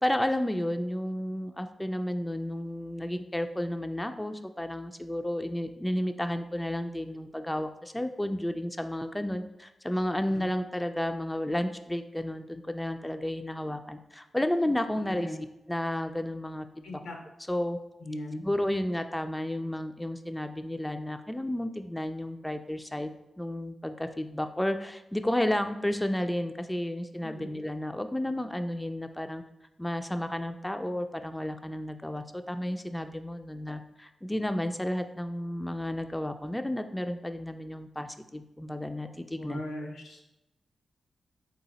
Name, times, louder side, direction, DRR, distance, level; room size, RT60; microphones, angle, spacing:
voice 1, 0.0-15.4 15.7-17.0 17.5-17.8 18.4-29.4 29.8-39.6, left 1 dB, 10° left, 7 dB, 0.3 m, -32 dB
voice 2, 15.0-15.4 16.8-17.2 18.0-18.4 27.2-27.5 39.4-40.2, left 1 dB, 90° left, 1 dB, 0.7 m, -39 dB
3.9 x 2.8 x 3.9 m, 0.92 s
supercardioid pair, 40°, 0 cm